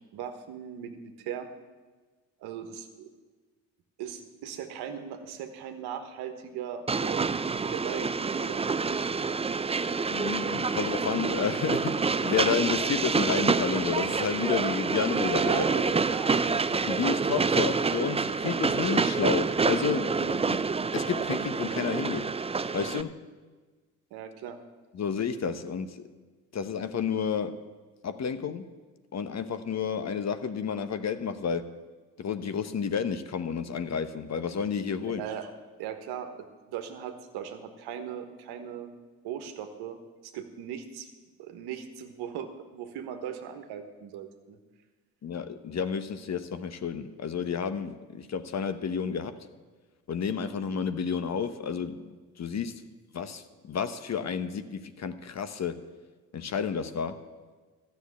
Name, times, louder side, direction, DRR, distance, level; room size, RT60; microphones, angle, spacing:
voice 1, 0.1-1.5 2.4-3.1 4.0-7.3 7.7-8.6 15.4-16.6 24.1-24.6 35.2-35.5 35.8-36.3 36.7-38.9 39.2-40.0 40.2-41.1 41.4-44.6, right 9 dB, 70° right, 7 dB, 1.4 m, -38 dB
Train, 6.9-23.0, right 4 dB, 15° right, 0.5 m, -27 dB
voice 2, 10.1-15.7 16.7-20.7 20.9-22.3 22.7-23.2 24.9-26.1 26.5-27.6 28.0-28.7 29.1-31.7 32.2-35.2 45.2-49.4 50.1-52.8 53.1-55.8 56.3-57.2, left 6 dB, 40° left, 11 dB, 1.0 m, -31 dB
13.0 x 6.9 x 8.3 m, 1.3 s
hypercardioid pair, 45°, 40 cm